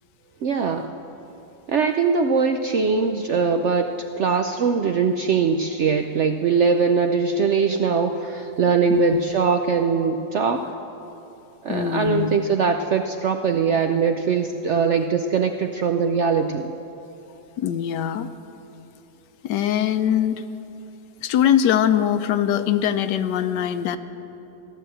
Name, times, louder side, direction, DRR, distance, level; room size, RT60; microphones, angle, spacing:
voice 1, 0.4-0.9 1.7-10.7 11.6-16.7, right 5 dB, 70° right, 6 dB, 0.7 m, -21 dB
voice 2, 11.7-12.4 17.6-18.3 19.4-20.4 21.2-24.0, left 10 dB, 85° left, 11 dB, 1.3 m, -22 dB
15.5 x 11.0 x 7.7 m, 2.9 s
omnidirectional pair, 1.8 m